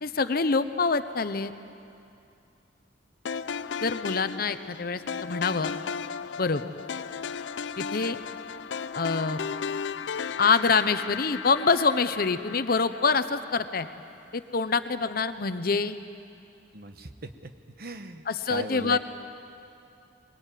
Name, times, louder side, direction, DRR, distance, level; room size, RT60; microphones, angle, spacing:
voice 1, 0.0-1.5 3.8-5.7 6.4-6.6 7.8-8.2 8.9-9.4 10.4-13.9 14.3-16.0 18.3-19.0, left 4 dB, 55° left, 12 dB, 0.8 m, -25 dB
sound 1, 3.3-13.5, left 6 dB, 80° left, 0.5 m, -35 dB
voice 2, 16.7-17.5 17.8-19.0, right 2 dB, 55° right, 8 dB, 1.1 m, -38 dB
22.0 x 19.0 x 9.1 m, 2.6 s
head